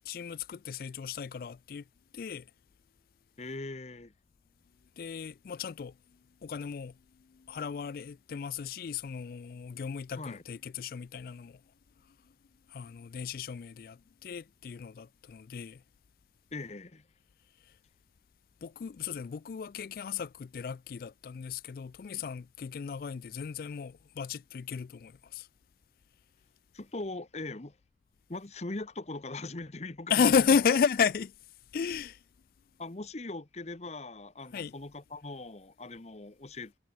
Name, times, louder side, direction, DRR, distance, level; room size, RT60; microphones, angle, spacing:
voice 1, 0.1-1.9 2.1-2.5 5.0-6.0 6.4-11.6 12.7-15.8 18.6-25.5 30.1-31.4 31.7-32.2 34.5-34.7, left 6 dB, 55° left, 0.3 m, -33 dB
voice 2, 3.4-4.1 10.2-10.4 16.5-17.1 26.7-27.8 28.3-30.4 32.8-36.8, left 2 dB, 40° left, 1.0 m, -40 dB
head